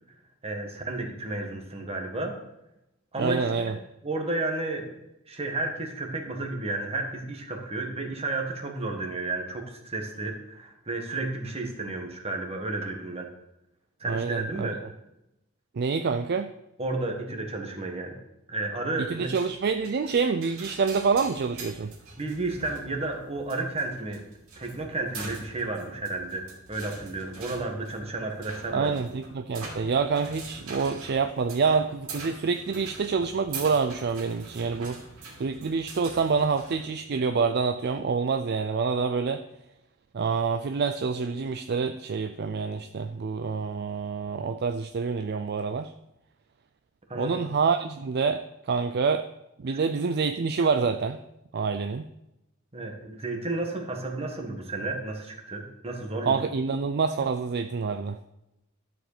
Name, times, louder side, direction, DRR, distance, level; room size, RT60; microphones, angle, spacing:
voice 1, 0.4-2.3 3.1-3.8 4.0-4.9 5.3-13.3 14.0-14.8 16.8-18.2 18.5-19.3 22.2-24.2 24.6-29.1 47.1-47.5 52.7-56.3, right 2 dB, 30° right, 2 dB, 1.7 m, -32 dB
voice 2, 3.2-3.7 14.1-14.7 15.7-16.5 19.0-21.9 28.7-35.0 35.4-39.4 40.1-45.9 47.2-49.3 49.6-51.2 51.5-52.1 56.3-58.2, right 5 dB, 50° right, 9 dB, 0.4 m, -27 dB
sound 1, 19.3-36.9, right 3 dB, 75° right, 2.8 m, -44 dB
12.5 x 5.1 x 6.8 m, 0.89 s
head